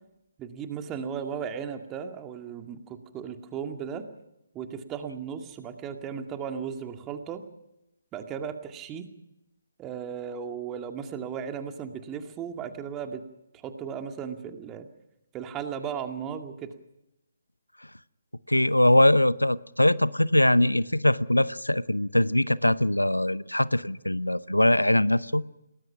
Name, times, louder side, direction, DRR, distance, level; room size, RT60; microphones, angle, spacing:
voice 1, 0.4-4.1 4.5-7.4 8.1-9.1 9.8-13.2 13.6-14.9 15.3-16.7, right 7 dB, 15° right, 6 dB, 2.1 m, -36 dB
voice 2, 18.5-25.4, left 1 dB, 85° left, 18 dB, 0.8 m, -22 dB
28.0 x 19.5 x 5.9 m, 0.87 s
figure-of-eight pair, 135°, 0 cm